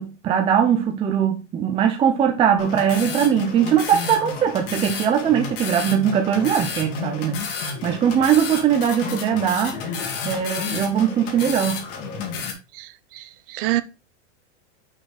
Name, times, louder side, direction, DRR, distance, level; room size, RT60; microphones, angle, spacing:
voice 1, 0.0-7.4 7.8-9.8 10.2-11.8, right 8 dB, 15° right, 0.5 m, -20 dB
sound 1, 2.6-12.5, left 5 dB, 50° left, 2.0 m, -31 dB
voice 2, 12.7-13.8, right 16 dB, 50° right, 0.7 m, -27 dB
6.2 x 4.3 x 4.8 m
supercardioid pair, 150°, 35 cm